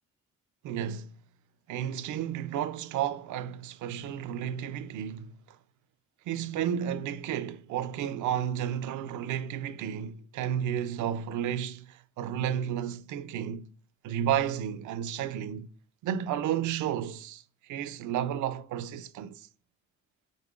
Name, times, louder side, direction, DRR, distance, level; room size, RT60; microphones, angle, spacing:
voice 1, 0.6-1.1 1.7-5.6 6.3-13.7 14.0-15.7 16.0-19.5, right 10 dB, 75° right, 0.5 m, -32 dB
5.4 x 3.7 x 2.4 m
cardioid pair, 90°, 30 cm